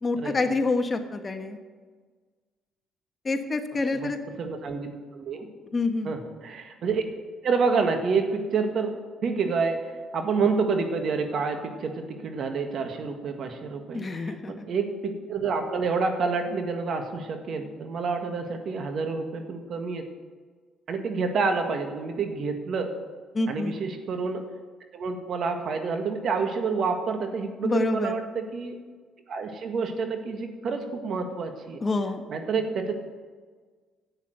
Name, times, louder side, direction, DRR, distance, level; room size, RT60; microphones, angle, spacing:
voice 1, 0.0-1.6 3.2-4.2 5.7-6.1 13.9-14.6 23.3-23.8 27.6-28.1 31.8-32.2, left 3 dB, 35° left, 7 dB, 1.2 m, -27 dB
voice 2, 4.4-5.5 6.0-7.0 7.4-9.0 9.2-20.1 20.9-22.9 23.5-24.4 24.9-28.8 29.3-31.8 32.3-33.0, right 4 dB, 60° right, 6 dB, 1.7 m, -28 dB
10.5 x 8.8 x 7.9 m, 1.5 s
supercardioid pair, 75°, 0 cm